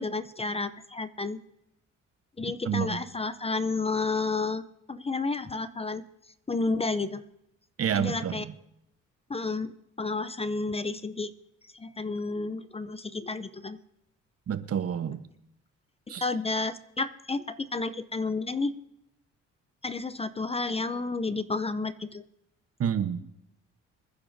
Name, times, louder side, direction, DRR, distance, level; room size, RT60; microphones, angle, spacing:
voice 1, 0.0-1.4 2.4-4.6 4.9-6.0 6.5-7.2 7.9-8.4 9.3-9.7 10.0-11.3 11.7-13.8 16.2-18.7 19.8-22.2, left 3 dB, 20° left, 13 dB, 0.6 m, -31 dB
voice 2, 2.6-3.0 7.8-8.5 14.5-15.2 16.1-16.3 22.8-23.2, right 8 dB, 50° right, 11 dB, 1.0 m, -29 dB
26.5 x 9.9 x 2.7 m, 0.82 s
cardioid pair, 90°, 30 cm